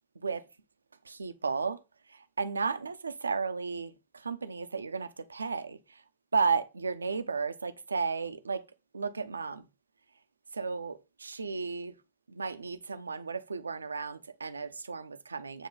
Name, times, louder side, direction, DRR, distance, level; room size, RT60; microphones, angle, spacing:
voice 1, 1.1-1.8 2.4-5.8 6.3-8.6 8.9-9.6 10.5-11.9 12.3-15.7, right 5 dB, 75° right, 0.6 m, -33 dB
9.0 x 3.1 x 5.4 m
figure-of-eight pair, 90°, 0 cm